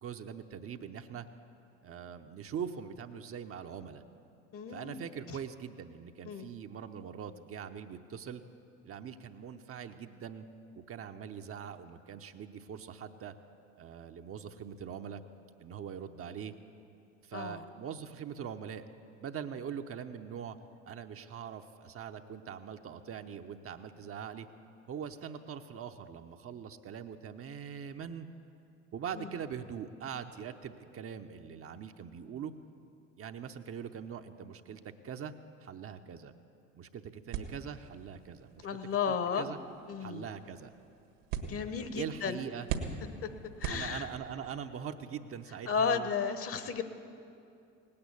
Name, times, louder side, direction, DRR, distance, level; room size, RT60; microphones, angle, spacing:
voice 1, 0.0-1.3 1.8-4.0 4.7-8.4 8.8-10.4 10.8-13.4 13.7-15.2 15.6-16.5 17.2-18.9 19.2-20.6 20.8-24.5 24.9-28.3 28.9-32.5 33.2-35.3 35.6-36.3 36.7-38.7 39.1-39.6 40.0-40.7 42.0-42.7 43.6-46.1, right 8 dB, 35° right, 7 dB, 0.8 m, -42 dB
voice 2, 4.5-5.0 5.3-5.4 6.2-6.5 17.3-17.6 29.2-29.3 38.6-39.5 39.9-40.3 41.4-42.4 43.6-44.1 45.7-46.8, left 6 dB, 35° left, 10 dB, 1.1 m, -33 dB
sound 1, 37.3-44.4, right 7 dB, 65° right, 1.6 m, -42 dB
18.5 x 8.7 x 8.4 m, 2.6 s
figure-of-eight pair, 60°, 38 cm